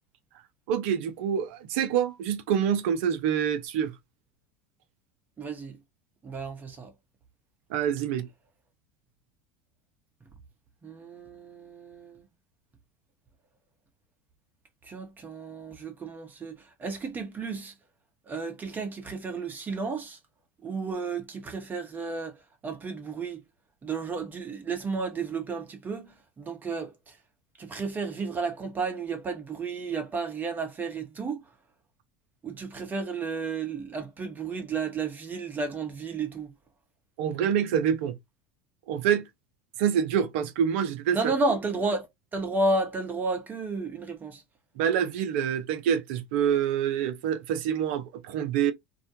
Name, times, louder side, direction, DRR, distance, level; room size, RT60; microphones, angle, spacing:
voice 1, 0.7-3.9 7.7-8.3 37.2-38.1 38.9-39.2 39.8-41.3 44.8-48.7, right 8 dB, 70° right, 0.5 m, -26 dB
voice 2, 5.4-5.8 6.2-6.9 10.8-12.2 14.8-17.7 18.3-20.2 20.6-22.3 22.6-23.4 23.8-27.2 27.6-31.4 32.4-36.5 41.1-44.4, right 3 dB, 25° right, 0.8 m, -32 dB
2.4 x 2.2 x 2.6 m
hypercardioid pair, 90°, 7 cm